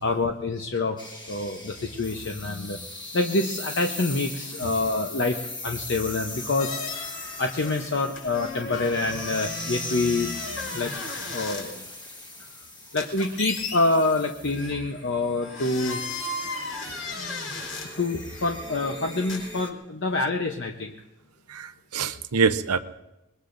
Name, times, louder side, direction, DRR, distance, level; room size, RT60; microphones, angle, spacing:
voice 1, 0.0-1.0 1.3-2.8 3.1-6.8 7.4-10.3 10.7-10.9 11.3-11.8 12.9-16.0 18.0-20.9, left 2 dB, 55° left, 3 dB, 0.9 m, -26 dB
sound 1, 1.0-19.7, left 2 dB, 20° left, 1.4 m, -40 dB
sound 2, 6.6-7.9 8.1-11.6 13.0-13.8 14.5-14.8 15.4-17.9 19.3-19.4, left 3 dB, 70° left, 4.9 m, -35 dB
voice 2, 21.5-22.8, right 5 dB, 85° right, 9 dB, 0.8 m, -25 dB
25.5 x 21.0 x 2.6 m, 0.95 s
head